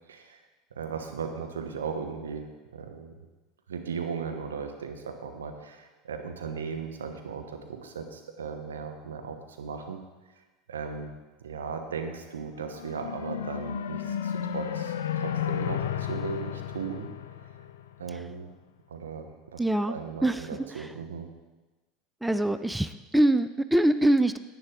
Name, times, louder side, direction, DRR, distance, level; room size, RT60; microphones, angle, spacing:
voice 1, 0.1-0.4 0.7-2.5 2.7-3.1 3.7-10.0 10.7-11.1 11.4-17.1 17.4-17.5 18.0-18.5 18.9-19.6 19.9-21.3, right 6 dB, 80° right, 5 dB, 1.0 m, -37 dB
sound 1, 12.6-18.1, left 9 dB, 70° left, 0.5 m, -33 dB
voice 2, 19.6-19.9 20.2-20.9 22.2-24.4, right 1 dB, 5° right, 12 dB, 0.4 m, -24 dB
10.5 x 9.1 x 3.7 m, 1.2 s
figure-of-eight pair, 75°, 0 cm